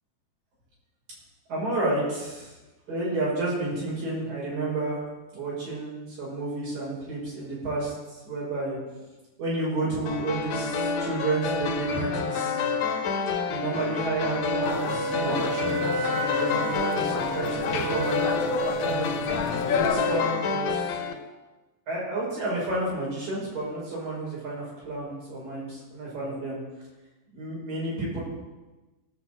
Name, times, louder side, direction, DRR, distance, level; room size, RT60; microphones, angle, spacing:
voice 1, 1.5-2.5 2.9-5.0 5.3-7.9 8.3-8.8 9.4-12.6 13.5-18.2 18.8-19.2 19.6-20.7 21.9-26.6 27.3-28.2, right 2 dB, 85° right, -6 dB, 7.1 m, -31 dB
sound 1, 10.1-21.1, left 5 dB, 65° left, 2.2 m, -29 dB
Wind instrument woodwind instrument, 14.2-18.9, right 2 dB, 60° right, 3.3 m, -32 dB
sound 2, 14.6-20.2, left 6 dB, 85° left, 1.3 m, -32 dB
17.0 x 5.8 x 8.0 m, 1.1 s
omnidirectional pair, 3.8 m